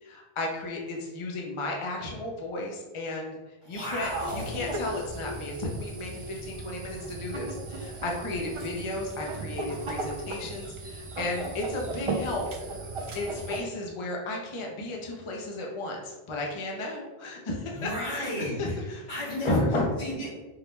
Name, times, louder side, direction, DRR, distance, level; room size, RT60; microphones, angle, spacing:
voice 1, 0.0-12.5 13.1-19.0 19.4-19.9, left 2 dB, 40° left, -1 dB, 0.5 m, -33 dB
voice 2, 3.7-4.5 17.7-18.8 19.1-19.7 20.0-20.3, equal, 75° left, -8 dB, 2.0 m, -33 dB
sound 1, 4.0-13.6, right 2 dB, 55° right, 0.3 m, -36 dB
4.5 x 2.1 x 3.2 m, 1.2 s
omnidirectional pair, 1.1 m